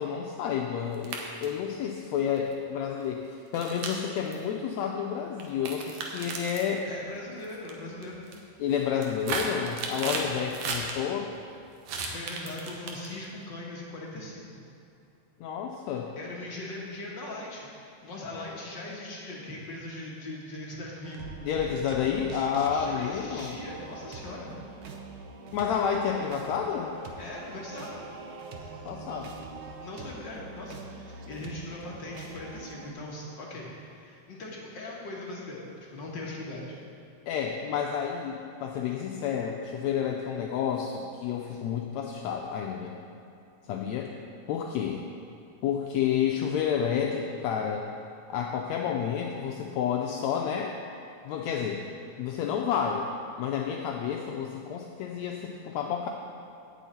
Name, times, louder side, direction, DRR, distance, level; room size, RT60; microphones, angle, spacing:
voice 1, 0.0-6.9 8.6-11.3 15.4-16.1 21.4-23.6 25.5-26.9 28.8-29.4 37.3-43.0 43.7-44.1 44.5-45.0 45.6-47.9 48.3-50.8 51.2-51.9 52.2-53.1 53.4-56.1, left 8 dB, 80° left, 1 dB, 1.7 m, -30 dB
sound 1, 0.9-1.6 2.4-2.5 3.5-4.3 5.4-6.7 7.4-7.7 8.0-8.4 8.8-10.9 11.9-13.3, right 4 dB, 65° right, 2.1 m, -34 dB
voice 2, 6.8-8.2 10.0-10.2 12.0-14.6 16.2-21.2 22.7-24.5 27.2-28.0 29.8-30.8 31.1-36.8 41.5-41.6, left 2 dB, 55° left, -3 dB, 1.4 m, -40 dB
sound 2, 21.0-32.9, right 3 dB, 90° right, 1.1 m, -44 dB
16.5 x 6.3 x 4.2 m, 2.6 s
omnidirectional pair, 3.5 m